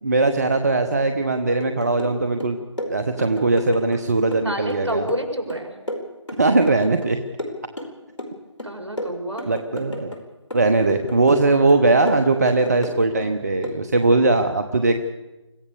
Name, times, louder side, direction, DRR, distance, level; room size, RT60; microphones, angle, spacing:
voice 1, 0.0-2.6 2.9-5.1 6.4-7.2 9.5-10.2 10.5-15.0, right 3 dB, 35° right, 7 dB, 1.0 m, -20 dB
sound 1, 1.6-2.2 2.4-4.0 4.3-7.1 7.4-8.3 8.6-10.2 10.5-11.4 11.7-13.3 13.6-13.8, left 1 dB, 75° left, 4.4 m, -33 dB
voice 2, 4.4-5.7 8.6-9.5, equal, 65° right, 4 dB, 5.0 m, -28 dB
25.0 x 15.5 x 6.9 m, 1.1 s
figure-of-eight pair, 160°, 16 cm